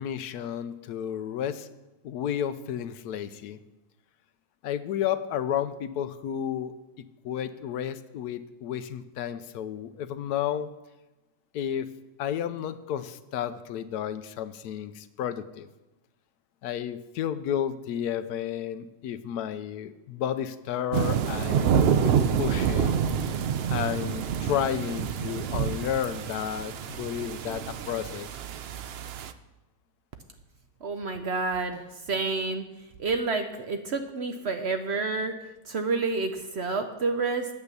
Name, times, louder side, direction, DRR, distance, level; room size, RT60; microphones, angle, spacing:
voice 1, 0.0-1.7 2.0-3.6 4.6-10.7 11.5-11.9 12.2-15.7 16.6-23.1 23.7-28.3, left 9 dB, 80° left, 13 dB, 1.1 m, -32 dB
sound 1, 20.9-29.3, right 7 dB, 80° right, 0.5 m, -27 dB
voice 2, 30.8-31.8 32.1-32.6 33.0-35.3 35.7-37.5, right 3 dB, 55° right, 6 dB, 0.8 m, -29 dB
8.7 x 8.1 x 6.7 m, 1.1 s
omnidirectional pair, 1.7 m